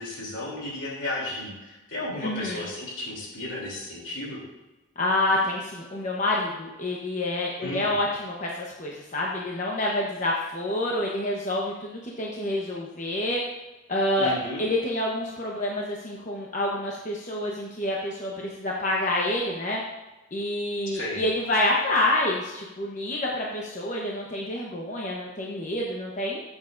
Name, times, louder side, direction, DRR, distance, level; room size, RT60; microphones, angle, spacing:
voice 1, 0.0-4.4 7.6-7.9 14.2-14.6 20.9-21.2, left 1 dB, 75° left, -3 dB, 3.2 m, -34 dB
voice 2, 2.2-2.6 5.0-13.4 13.9-14.3 14.6-19.8 20.3-26.4, left 1 dB, 40° left, -3 dB, 1.0 m, -28 dB
14.0 x 7.4 x 2.6 m, 1.1 s
head